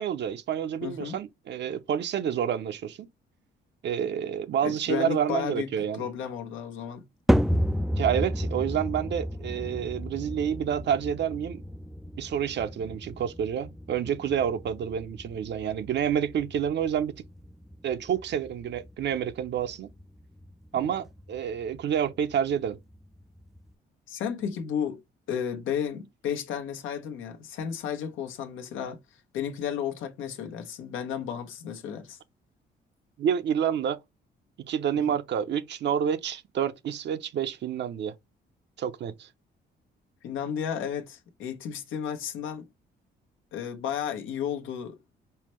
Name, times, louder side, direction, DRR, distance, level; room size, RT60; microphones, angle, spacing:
voice 1, 0.0-3.1 3.8-6.1 8.0-11.6 12.2-17.2 17.8-19.9 20.7-22.8 33.2-34.0 34.7-38.1 38.8-39.3, right 8 dB, 60° right, 0.7 m, -28 dB
voice 2, 0.8-1.2 4.6-7.0 20.8-20.9 24.1-25.0 25.3-29.0 29.3-32.2 35.0-35.1 40.2-42.7 43.5-45.0, left 8 dB, 85° left, 0.9 m, -33 dB
sound 1, 7.3-23.7, equal, ahead, 0.3 m, -33 dB
5.6 x 2.1 x 3.1 m
cardioid pair, 90°, 20 cm